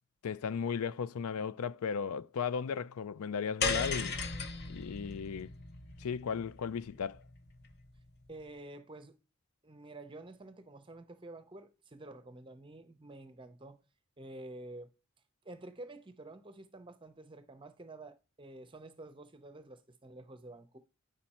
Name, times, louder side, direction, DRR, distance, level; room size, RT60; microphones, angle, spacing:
voice 1, 0.2-4.2 4.7-5.5 6.0-7.2, left 6 dB, 85° left, 0.4 m, -36 dB
sound 1, 3.6-8.0, left 4 dB, 50° left, 0.8 m, -37 dB
voice 2, 8.3-9.2 9.6-13.8 14.2-14.9 15.4-20.8, right 2 dB, 25° right, 0.6 m, -49 dB
8.9 x 5.3 x 4.2 m
head